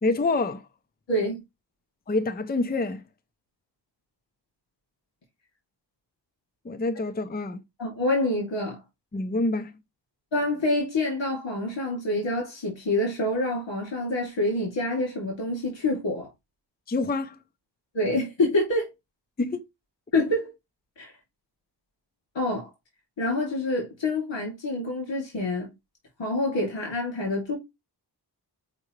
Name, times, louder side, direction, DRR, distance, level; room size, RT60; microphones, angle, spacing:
voice 1, 0.0-0.7 2.1-3.1 6.6-7.6 9.1-9.8 16.9-17.4 19.4-19.6, left 2 dB, 20° left, 0.6 m, -27 dB
voice 2, 1.1-1.4 7.8-8.8 10.3-16.3 17.9-18.9 20.1-20.5 21.0-21.1 22.3-22.7 23.2-25.7 26.2-27.5, left 1 dB, 85° left, 2.8 m, -27 dB
6.6 x 4.7 x 3.2 m
wide cardioid pair, 105°, 43 cm